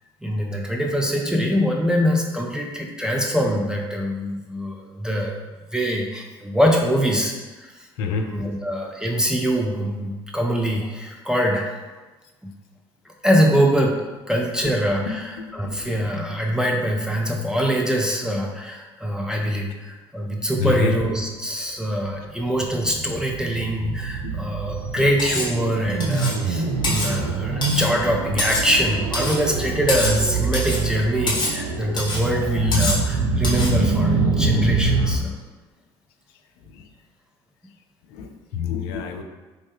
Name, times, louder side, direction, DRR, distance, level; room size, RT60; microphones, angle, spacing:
voice 1, 0.2-5.4 5.7-7.7 8.1-11.7 12.4-12.5 13.1-14.0 14.3-35.3, equal, 5° right, 0 dB, 0.5 m, -23 dB
voice 2, 8.0-8.3 15.4-15.8 20.6-21.0 24.2-24.3 36.7-36.9 38.1-39.2, left 6 dB, 70° left, 4 dB, 0.4 m, -27 dB
sound 1, 22.3-35.2, right 3 dB, 70° right, 0.4 m, -25 dB
Cutlery silverware, 25.2-25.6 26.0-26.4 26.8-27.1 27.6-27.9 28.4-28.7 29.1-29.4 29.9-30.2 30.5-30.9 31.3-31.6 32.0-32.2 32.7-33.1 33.4-33.8, left 2 dB, 35° left, 1.0 m, -26 dB
3.2 x 2.0 x 3.5 m, 1.2 s
hypercardioid pair, 55°, 13 cm